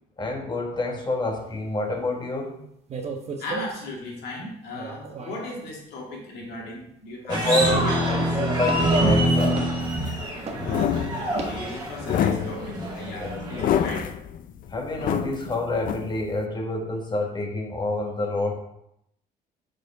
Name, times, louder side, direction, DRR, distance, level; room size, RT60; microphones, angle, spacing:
voice 1, 0.2-2.6 7.2-9.7 13.2-13.7 14.7-18.6, left 1 dB, 25° left, 2 dB, 1.3 m, -28 dB
sound 1, 2.9-3.9 4.7-5.5 7.7-8.1 8.6-9.0 9.5-9.8 10.4-10.7 11.3-11.6, right 4 dB, 40° right, 1.0 m, -35 dB
voice 2, 3.4-8.0 11.1-14.1, left 1 dB, 75° left, -2 dB, 2.2 m, -36 dB
sound 2, 7.3-13.9, right 1 dB, 25° right, 2.0 m, -25 dB
sound 3, 9.8-16.5, left 10 dB, 55° left, 0.4 m, -28 dB
5.1 x 4.3 x 5.4 m, 0.77 s
cardioid pair, 110°, 17 cm